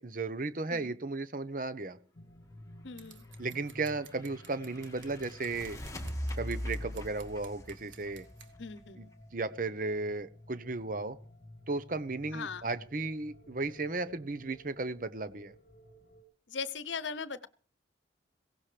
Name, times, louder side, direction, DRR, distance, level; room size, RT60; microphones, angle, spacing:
voice 1, 0.0-2.0 3.4-5.8 6.4-8.3 9.0-11.2 11.7-15.5, right 3 dB, 45° right, 13 dB, 0.9 m, -35 dB
sound 1, 2.1-16.2, left 1 dB, 45° left, 2.0 m, -54 dB
voice 2, 2.8-3.2 8.6-9.1 12.3-12.7 16.5-17.5, left 5 dB, 75° left, 16 dB, 0.9 m, -39 dB
Scissors, 3.0-8.5, right 9 dB, 85° right, 1.8 m, -56 dB
sound 2, 3.4-9.1, equal, 15° left, 1.9 m, -41 dB
22.5 x 17.0 x 3.4 m, 0.42 s
head